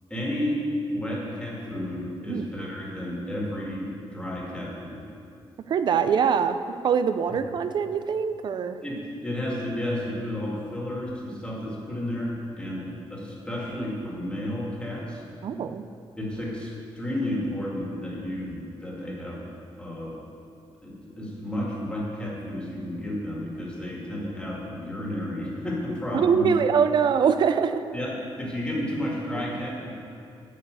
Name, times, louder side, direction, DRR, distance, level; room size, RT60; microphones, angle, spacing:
voice 1, 0.1-0.6 0.9-5.0 8.8-9.0 9.2-15.2 16.2-19.4 19.8-20.2 20.8-26.5 27.9-29.9, left 1 dB, 10° left, -4 dB, 2.1 m, -32 dB
voice 2, 5.7-6.6 6.8-8.8 15.4-15.8 26.1-27.8, right 7 dB, 50° right, 10 dB, 0.4 m, -23 dB
8.8 x 5.4 x 8.1 m, 2.6 s
wide cardioid pair, 155°, 10 cm